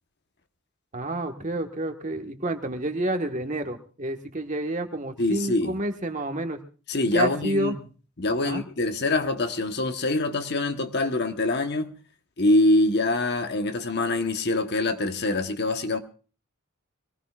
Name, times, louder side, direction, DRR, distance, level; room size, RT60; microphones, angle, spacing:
voice 1, 0.9-6.6 7.1-7.7 8.4-8.6, right 1 dB, 35° right, 1.5 m, -29 dB
voice 2, 5.2-5.8 6.9-7.7 8.2-11.9 12.4-16.0, left 2 dB, 50° left, 1.2 m, -24 dB
23.5 x 19.0 x 2.4 m
head